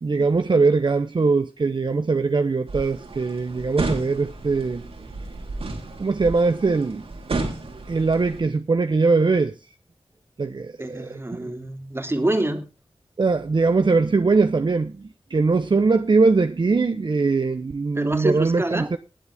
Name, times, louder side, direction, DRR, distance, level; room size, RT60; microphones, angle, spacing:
voice 1, 0.0-4.8 6.0-7.0 7.9-9.5 10.4-11.1 11.4-11.5 13.2-15.0 15.3-19.0, right 4 dB, 55° right, 1.0 m, -21 dB
sound 1, 2.7-8.4, right 3 dB, 80° right, 4.1 m, -32 dB
voice 2, 10.8-12.6 18.0-18.9, right 1 dB, 25° right, 2.8 m, -26 dB
20.0 x 7.9 x 3.6 m
wide cardioid pair, 70°, 10 cm